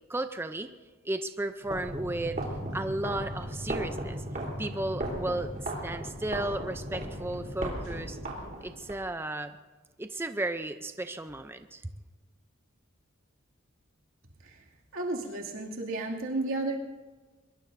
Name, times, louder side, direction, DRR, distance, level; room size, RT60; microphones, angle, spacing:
voice 1, 0.1-0.7 1.0-2.4 2.7-4.2 4.6-8.2 8.6-9.6 10.0-11.8, right 1 dB, 10° right, 9 dB, 0.5 m, -34 dB
sound 1, 1.6-9.0, right 1 dB, 40° right, 3.7 m, -36 dB
voice 2, 14.9-16.8, right 2 dB, 90° right, -1 dB, 2.5 m, -32 dB
23.5 x 22.0 x 2.7 m, 1.3 s
head